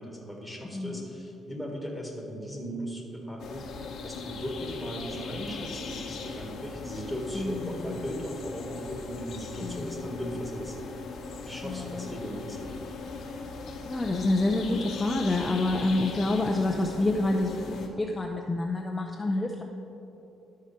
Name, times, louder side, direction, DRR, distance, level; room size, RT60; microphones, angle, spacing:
voice 1, 0.0-3.7 4.0-10.8 11.5-12.8, equal, ahead, -2 dB, 1.7 m, -37 dB
voice 2, 0.7-1.0 7.3-8.0 9.6-10.0 11.6-12.1 13.8-19.6, left 2 dB, 20° left, 1 dB, 0.5 m, -28 dB
sound 1, 3.4-17.9, left 4 dB, 70° left, 1.0 m, -39 dB
12.5 x 4.8 x 4.3 m, 2.9 s
cardioid pair, 90°, 0 cm